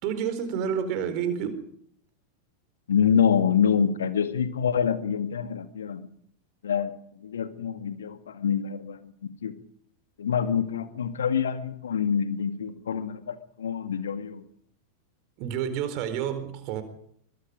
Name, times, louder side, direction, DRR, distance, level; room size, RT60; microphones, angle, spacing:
voice 1, 0.0-1.6 15.4-16.8, right 8 dB, 45° right, 10 dB, 4.2 m, -29 dB
voice 2, 2.9-6.1 6.6-9.5 10.2-14.4, left 7 dB, 65° left, 10 dB, 2.1 m, -26 dB
23.0 x 22.5 x 5.1 m, 0.67 s
figure-of-eight pair, 90°, 0 cm